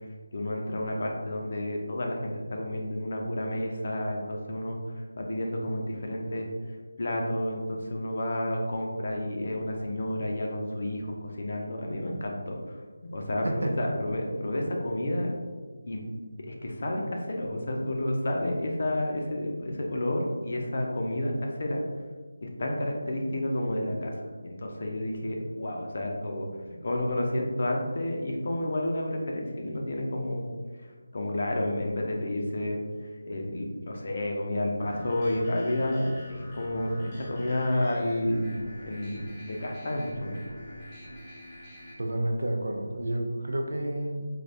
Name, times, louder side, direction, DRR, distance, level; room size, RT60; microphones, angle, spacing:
voice 1, 0.3-4.8 5.2-6.5 7.0-12.8 13.1-15.3 15.9-16.0 16.4-21.8 22.4-24.1 24.4-26.5 26.8-30.4 31.1-32.8 33.3-40.3, left 1 dB, 50° left, 1 dB, 0.5 m, -30 dB
sound 1, 34.8-41.9, equal, 15° left, 0.7 m, -45 dB
voice 2, 42.0-44.3, right 1 dB, 85° right, 3 dB, 0.4 m, -30 dB
3.3 x 2.2 x 2.5 m, 1.5 s
figure-of-eight pair, 170°, 0 cm